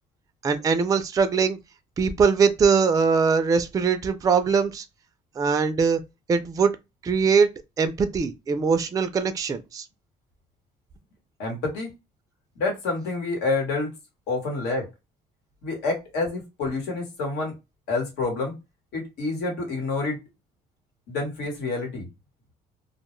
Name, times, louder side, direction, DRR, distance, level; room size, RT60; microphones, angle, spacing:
voice 1, 0.4-1.6 2.0-4.8 5.4-6.0 6.3-6.7 7.0-7.5 7.8-9.8, right 5 dB, 20° right, 0.3 m, -21 dB
voice 2, 11.4-11.9 12.6-14.0 14.3-14.9 15.6-17.5 17.9-18.5 18.9-20.2 21.1-22.1, left 3 dB, 90° left, 1.1 m, -28 dB
2.2 x 2.0 x 3.0 m
cardioid pair, 110°, 17 cm